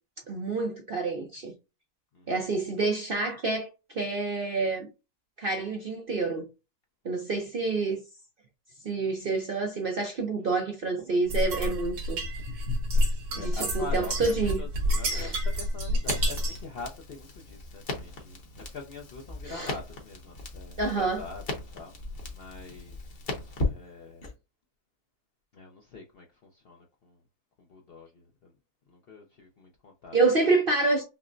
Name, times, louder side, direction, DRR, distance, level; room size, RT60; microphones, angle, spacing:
voice 1, 0.3-1.5 2.3-4.9 5.4-6.5 7.0-8.0 8.8-12.2 13.4-14.6 15.1-15.4 19.4-19.7 20.8-21.2 30.1-31.0, right 3 dB, 55° right, 0.6 m, -28 dB
sound 1, 11.3-16.7, equal, 80° right, 1.8 m, -28 dB
voice 2, 13.3-21.9 22.3-23.0 23.7-24.3 25.5-27.2 27.6-28.5 28.9-30.2, left 4 dB, 55° left, 0.6 m, -44 dB
Crackle, 16.0-24.3, left 2 dB, 40° left, 1.1 m, -37 dB
5.7 x 2.1 x 2.5 m
omnidirectional pair, 1.7 m